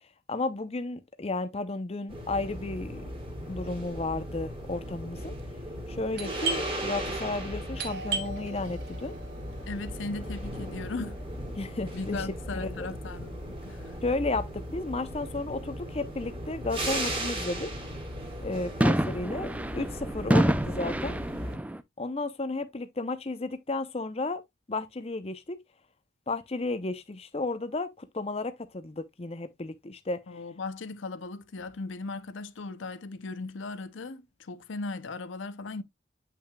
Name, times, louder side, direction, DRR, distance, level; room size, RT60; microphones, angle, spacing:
voice 1, 0.3-3.0 3.5-5.3 5.9-9.1 11.6-12.2 12.5-12.9 14.0-17.7 18.4-21.2 22.0-24.4 24.7-25.6 26.3-30.2, left 2 dB, 30° left, 0.6 m, -33 dB
sound 1, 2.1-21.6, right 1 dB, 30° right, 2.4 m, -37 dB
Doorbell, 6.1-11.6, right 4 dB, 55° right, 1.8 m, -38 dB
voice 2, 9.7-11.2 11.9-14.0 30.3-35.8, left 3 dB, 75° left, 0.6 m, -37 dB
sound 2, 18.8-21.8, right 1 dB, 5° right, 0.4 m, -27 dB
8.5 x 5.7 x 2.3 m
head